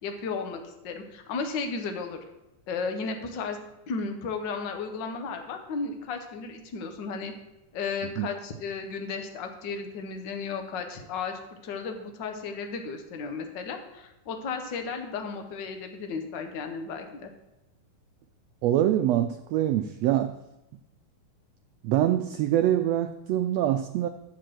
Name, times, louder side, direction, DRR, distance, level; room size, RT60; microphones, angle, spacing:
voice 1, 0.0-2.2 2.7-3.6 3.9-7.3 7.7-17.3, left 4 dB, 60° left, 5 dB, 1.2 m, -34 dB
voice 2, 18.6-20.3 21.8-24.1, right 12 dB, 90° right, 8 dB, 1.4 m, -24 dB
12.5 x 4.7 x 7.6 m, 0.95 s
omnidirectional pair, 3.5 m